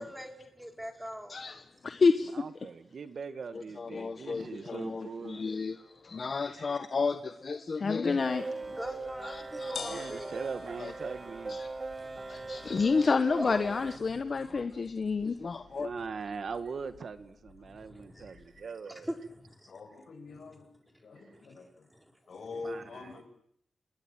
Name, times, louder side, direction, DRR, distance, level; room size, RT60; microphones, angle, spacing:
voice 1, 0.6-1.4 8.7-10.5 12.0-12.7 13.4-13.6 15.9-16.0 17.8-18.3 18.9-19.7 21.9-22.0, equal, 5° right, 4.5 m, -42 dB
voice 2, 1.3-2.7 3.5-8.4 9.2-10.0 10.8-10.9 11.5-11.7 12.3-15.9, left 4 dB, 45° left, 1.3 m, -30 dB
voice 3, 2.4-5.4 9.9-11.6 15.8-19.1 22.6-22.8, right 5 dB, 60° right, 2.0 m, -41 dB
voice 4, 3.6-5.7 6.0-6.3 7.9-8.8 13.1-14.0 14.3-14.7 17.6-17.7 19.7-20.7 21.0-21.9 22.3-23.2, left 3 dB, 60° left, 8.0 m, -47 dB
sound 1, 8.2-14.0, right 3 dB, 30° right, 1.3 m, -40 dB
sound 2, 8.6-18.7, left 6 dB, 85° left, 4.0 m, -51 dB
29.0 x 20.5 x 9.3 m
wide cardioid pair, 110°, 0 cm